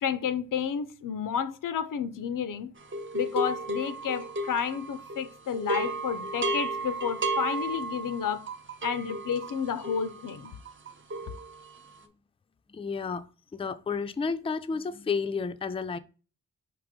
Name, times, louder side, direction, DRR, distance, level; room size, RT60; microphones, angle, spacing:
voice 1, 0.0-2.7 3.1-8.5 8.8-10.5, left 7 dB, 90° left, 0.5 m, -31 dB
sound 1, 2.9-5.3 5.5-11.9, right 2 dB, 40° right, 0.6 m, -33 dB
voice 2, 12.7-13.3 13.5-16.0, left 5 dB, 20° left, 0.3 m, -31 dB
5.0 x 3.0 x 3.6 m
cardioid pair, 60°, 31 cm